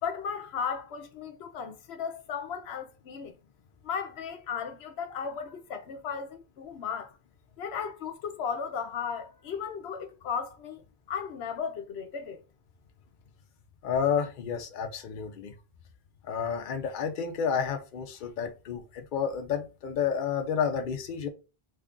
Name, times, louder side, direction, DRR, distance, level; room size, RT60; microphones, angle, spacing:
voice 1, 0.0-3.4 3.8-7.2 7.6-10.8 11.1-12.4, left 6 dB, 90° left, 0.9 m, -35 dB
voice 2, 13.8-15.5 16.2-21.3, left 7 dB, 55° left, 0.7 m, -30 dB
3.2 x 2.4 x 3.6 m
omnidirectional pair, 1.0 m